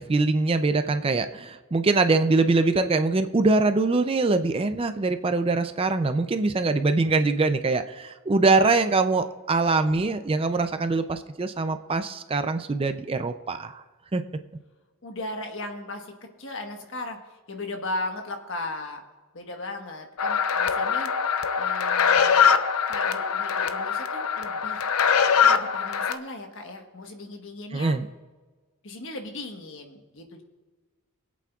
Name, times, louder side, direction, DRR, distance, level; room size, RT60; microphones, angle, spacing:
voice 1, 0.0-13.8 14.1-14.2 27.7-28.0, right 3 dB, 25° right, 9 dB, 0.4 m, -23 dB
voice 2, 15.0-16.1 16.4-19.0 19.3-21.1 21.6-22.6 22.9-24.8 25.4-28.0 28.8-30.4, left 2 dB, 60° left, 4 dB, 1.3 m, -37 dB
sound 1, 20.2-26.1, left 7 dB, 80° left, 0.6 m, -23 dB
23.0 x 8.4 x 2.4 m, 1.3 s
head